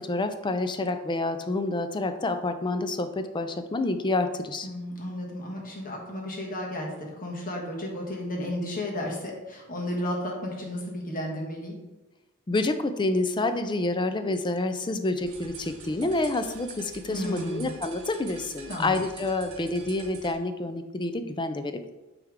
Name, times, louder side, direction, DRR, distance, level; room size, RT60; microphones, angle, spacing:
voice 1, 0.0-4.7 12.5-21.9, left 2 dB, 20° left, 9 dB, 0.4 m, -28 dB
voice 2, 4.6-11.7 17.1-17.7 18.7-19.0, left 1 dB, 40° left, -1 dB, 1.5 m, -33 dB
sound 1, 15.2-20.4, right 5 dB, 80° right, 1.3 m, -46 dB
9.2 x 3.4 x 3.6 m, 1.1 s
head